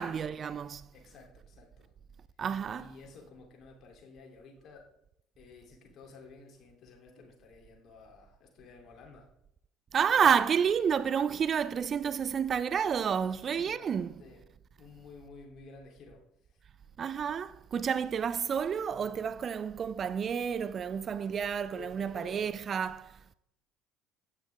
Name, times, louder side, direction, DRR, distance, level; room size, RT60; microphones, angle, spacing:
voice 1, 0.0-0.9 2.4-2.9 9.9-14.1 17.0-23.3, right 7 dB, 40° right, 0.4 m, -30 dB
voice 2, 0.9-1.9 2.7-4.9 5.4-9.3 13.5-14.4 14.8-16.6 21.7-22.6, left 4 dB, 50° left, 3.0 m, -52 dB
15.5 x 10.0 x 3.5 m
figure-of-eight pair, 60°, 0 cm